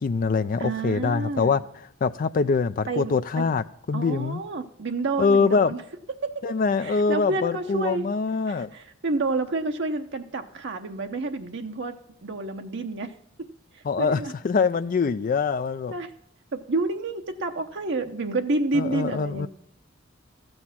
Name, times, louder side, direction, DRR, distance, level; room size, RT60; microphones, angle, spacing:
voice 1, 0.0-1.6 2.0-4.4 5.2-5.7 6.4-8.7 13.8-15.9 18.7-19.5, left 4 dB, 45° left, 11 dB, 0.4 m, -24 dB
voice 2, 0.6-1.6 2.9-3.5 3.9-5.8 6.2-6.4 6.8-8.0 8.5-11.9 12.2-13.1 13.7-14.3 15.9-16.1 16.5-19.5, right 3 dB, 65° right, 5 dB, 0.8 m, -29 dB
13.5 x 7.9 x 5.7 m, 0.73 s
head